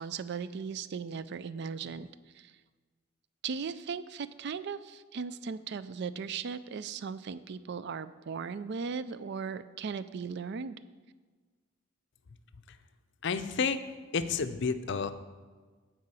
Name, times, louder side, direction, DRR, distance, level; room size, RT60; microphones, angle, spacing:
voice 1, 0.0-2.1 2.3-2.5 3.4-10.8, right 5 dB, 55° right, 14 dB, 0.4 m, -37 dB
voice 2, 13.2-13.8 14.1-15.1, left 5 dB, 60° left, 11 dB, 0.5 m, -30 dB
9.5 x 4.9 x 6.9 m, 1.4 s
head